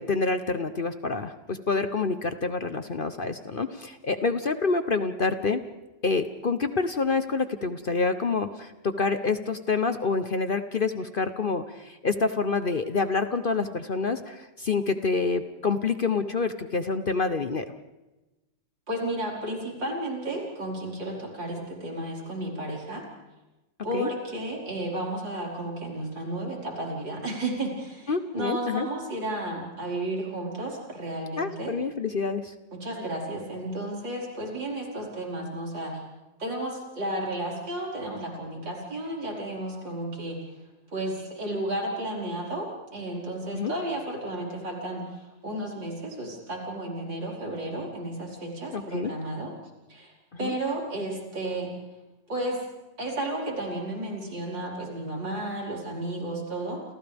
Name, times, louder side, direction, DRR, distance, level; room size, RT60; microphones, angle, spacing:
voice 1, 0.0-5.6 6.0-17.6 23.9-24.1 28.1-28.9 31.4-32.4 43.5-43.7 48.7-49.1 50.4-50.5, left 4 dB, 45° left, 9 dB, 0.7 m, -27 dB
voice 2, 18.9-23.1 23.8-31.7 32.7-36.0 36.4-40.4 40.9-49.5 49.9-50.1 50.4-51.7 52.3-52.6 53.0-56.8, right 1 dB, 90° right, -3 dB, 5.8 m, -33 dB
29.5 x 28.5 x 3.5 m, 1.1 s
omnidirectional pair, 1.9 m